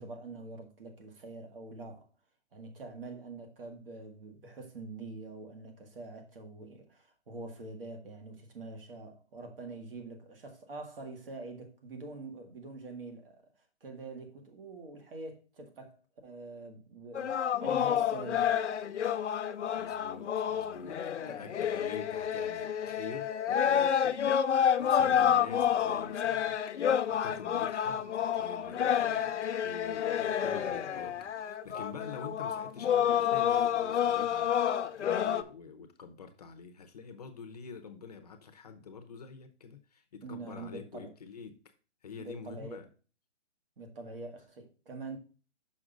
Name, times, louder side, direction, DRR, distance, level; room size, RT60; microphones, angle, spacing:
voice 1, 0.0-2.1 2.5-13.5 13.8-18.6 21.2-21.6 25.0-25.3 40.2-41.1 42.2-42.8 43.8-45.2, right 3 dB, 55° right, 1.8 m, -45 dB
sound 1, 17.2-35.4, left 9 dB, 80° left, 0.7 m, -29 dB
voice 2, 19.7-21.0 21.3-29.3 29.6-41.6 42.0-42.9, left 5 dB, 35° left, 0.7 m, -47 dB
6.3 x 5.7 x 3.7 m
hypercardioid pair, 170°, 34 cm